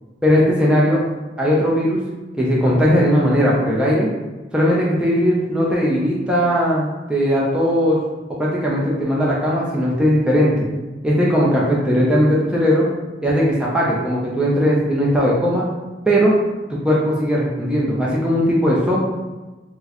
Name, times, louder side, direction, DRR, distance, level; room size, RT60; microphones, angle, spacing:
voice 1, 0.2-1.0 1.4-2.0 2.4-4.1 4.5-8.0 8.4-10.7 11.0-12.9 13.2-15.6 16.0-16.3 16.7-19.0, equal, 5° right, -5 dB, 0.5 m, -18 dB
4.3 x 2.1 x 2.9 m, 1.2 s
head